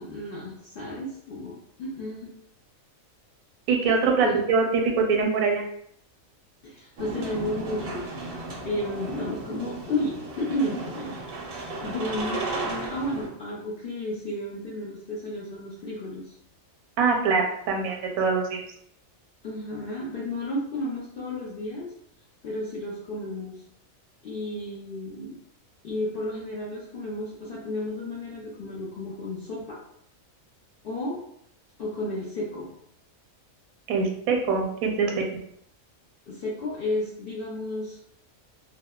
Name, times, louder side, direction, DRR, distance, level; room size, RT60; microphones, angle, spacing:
voice 1, 0.0-2.3 4.2-4.4 6.6-8.1 8.6-11.1 11.5-16.3 19.4-21.9 22.4-23.6 24.2-25.4 25.8-29.8 30.8-31.2 31.8-32.7 36.3-38.0, left 1 dB, 65° left, -5 dB, 0.5 m, -32 dB
voice 2, 3.7-5.6 17.0-18.6 33.9-35.2, right 4 dB, 85° right, 2 dB, 1.0 m, -23 dB
sound 1, 7.0-13.3, right 2 dB, 60° right, 0.6 m, -35 dB
2.8 x 2.0 x 2.2 m, 0.70 s
omnidirectional pair, 1.4 m